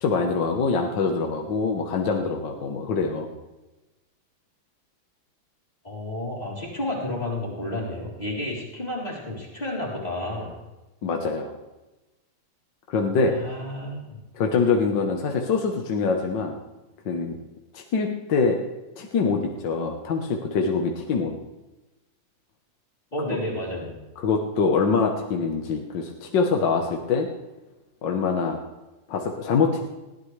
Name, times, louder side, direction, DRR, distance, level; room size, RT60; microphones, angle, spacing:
voice 1, 0.0-3.3 11.0-11.5 12.9-13.4 14.3-16.5 17.0-17.4 17.7-18.6 19.0-21.3 24.2-27.3 28.0-28.6 29.1-29.8, left 4 dB, 70° left, 2 dB, 1.8 m, -24 dB
voice 2, 5.8-10.6 13.3-14.2 23.1-24.0, left 1 dB, 20° left, -4 dB, 3.8 m, -31 dB
20.0 x 16.0 x 3.3 m, 1.1 s
omnidirectional pair, 2.1 m